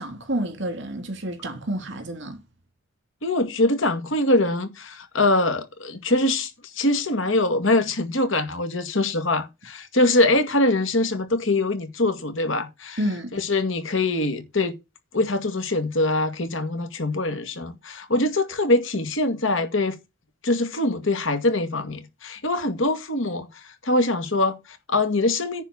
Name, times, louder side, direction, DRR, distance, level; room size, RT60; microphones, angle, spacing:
voice 1, 0.0-2.4 13.0-13.3, right 1 dB, 60° right, 2.8 m, -29 dB
voice 2, 3.2-13.0 13.3-14.7 15.1-20.0 20.4-25.6, left 2 dB, 70° left, 2.1 m, -23 dB
10.0 x 4.5 x 7.1 m
head